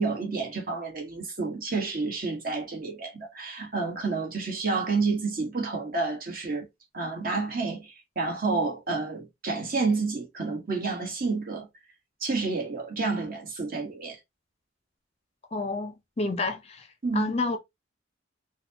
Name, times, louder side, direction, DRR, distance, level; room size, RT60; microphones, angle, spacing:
voice 1, 0.0-6.7 6.9-11.7 12.2-14.2 17.0-17.3, right 4 dB, 50° right, 1.2 m, -29 dB
voice 2, 15.5-16.9 17.1-17.6, left 3 dB, 35° left, 0.5 m, -29 dB
4.0 x 2.2 x 2.7 m
head